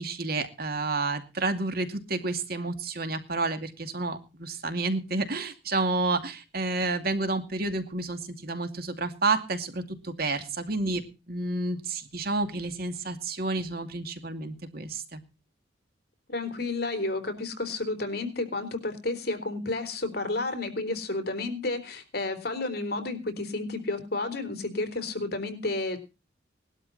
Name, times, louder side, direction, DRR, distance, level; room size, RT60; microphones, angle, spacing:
voice 1, 0.0-15.2, right 3 dB, 55° right, 8 dB, 2.5 m, -30 dB
voice 2, 16.3-26.0, left 2 dB, 55° left, 10 dB, 3.9 m, -31 dB
19.5 x 12.5 x 4.1 m, 0.30 s
head